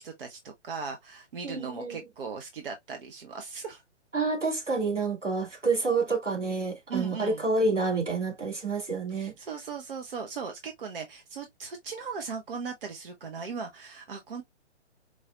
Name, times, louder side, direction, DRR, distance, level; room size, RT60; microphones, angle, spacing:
voice 1, 0.0-3.8 6.9-7.5 9.1-14.4, right 5 dB, 50° right, 0.8 m, -38 dB
voice 2, 1.4-2.0 4.1-9.3, right 3 dB, 85° right, 2.4 m, -28 dB
4.7 x 2.8 x 2.3 m
figure-of-eight pair, 130°, 35 cm